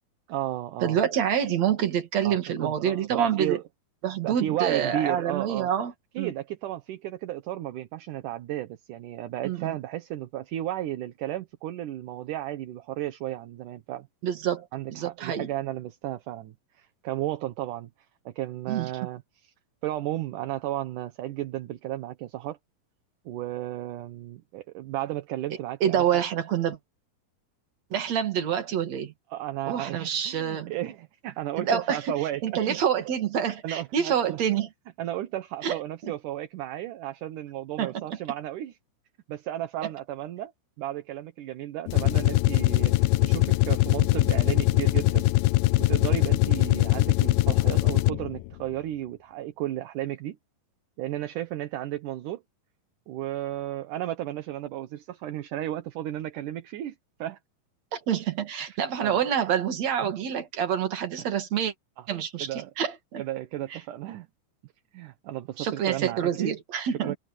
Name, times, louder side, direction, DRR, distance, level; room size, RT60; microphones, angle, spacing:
voice 1, 0.3-1.0 2.2-3.6 4.2-5.7 6.1-14.1 14.7-17.9 18.3-19.5 19.8-22.6 23.3-26.2 29.3-32.8 33.6-34.4 35.0-38.8 39.3-40.5 40.8-45.2 45.8-50.4 51.0-52.4 53.1-56.9 57.2-57.4 59.0-59.2 60.0-60.1 61.2-61.3 62.0-62.1 62.4-62.7 63.2-64.3 64.9-66.6 66.8-67.1, right 13 dB, 65° right, 2.3 m, -34 dB
voice 2, 0.8-3.6 4.0-5.9 6.2-6.3 9.4-9.7 14.2-15.5 18.7-18.9 25.8-26.8 27.9-29.1 29.7-30.7 31.6-32.1 32.4-34.7 35.6-36.1 37.8-38.0 57.9-61.7 62.1-62.5 62.8-63.2 65.6-67.2, right 9 dB, 50° right, 3.1 m, -27 dB
sound 1, 41.9-48.4, left 18 dB, 80° left, 2.2 m, -22 dB
omnidirectional pair, 4.5 m